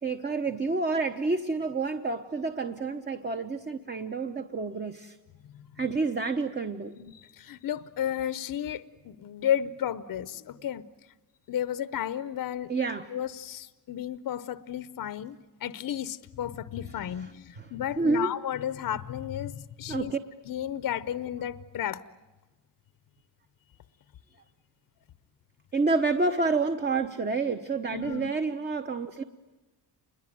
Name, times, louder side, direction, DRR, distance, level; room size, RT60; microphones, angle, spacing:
voice 1, 0.0-5.2 5.8-7.0 12.7-13.1 16.9-18.3 19.9-20.2 25.7-29.2, right 3 dB, 25° right, 7 dB, 1.0 m, -29 dB
voice 2, 7.0-10.9 11.5-12.7 13.1-20.1 20.5-22.0 27.9-28.3, left 10 dB, 55° left, 15 dB, 0.8 m, -33 dB
28.5 x 21.5 x 9.2 m, 1.2 s
wide cardioid pair, 140°, 41 cm